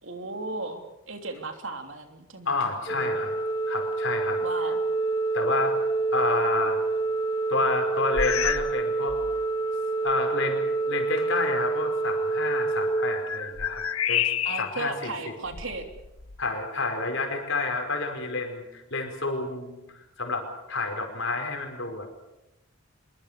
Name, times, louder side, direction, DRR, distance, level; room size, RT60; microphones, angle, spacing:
voice 1, 0.0-2.6 2.9-3.2 4.4-4.8 14.4-15.8, right 3 dB, 65° right, 5 dB, 3.2 m, -36 dB
voice 2, 2.5-3.3 3.7-4.4 5.3-5.8 6.1-6.8 7.5-9.1 10.0-13.8 14.1-14.3 14.6-15.1 16.4-22.1, left 3 dB, 65° left, 4 dB, 5.2 m, -29 dB
Organ, 2.9-13.9, right 3 dB, 20° left, 1.4 m, -27 dB
sound 1, 8.1-8.8 9.1-9.4 10.1-10.2 12.6-14.9 15.5-16.5, left 9 dB, 90° left, 1.1 m, -30 dB
24.5 x 23.0 x 6.8 m, 0.93 s
head